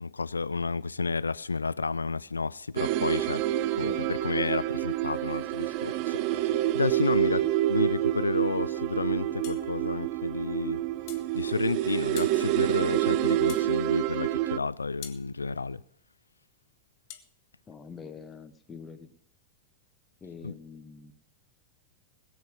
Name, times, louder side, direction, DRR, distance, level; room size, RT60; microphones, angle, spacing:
voice 1, 0.0-3.4 3.8-7.4 7.7-10.8 11.3-15.8 20.4-20.5, left 4 dB, 75° left, 0.5 m, -31 dB
sound 1, 2.8-14.6, right 13 dB, 45° right, 0.5 m, -28 dB
voice 2, 7.1-7.5 17.7-19.1 20.2-21.1, left 5 dB, 20° left, 1.4 m, -45 dB
sound 2, 9.4-9.7 11.1-11.3 12.2-12.4 13.5-13.7 15.0-15.2 17.1-17.3, left 11 dB, 45° left, 1.3 m, -43 dB
20.5 x 7.9 x 5.3 m
figure-of-eight pair, 90°, 0 cm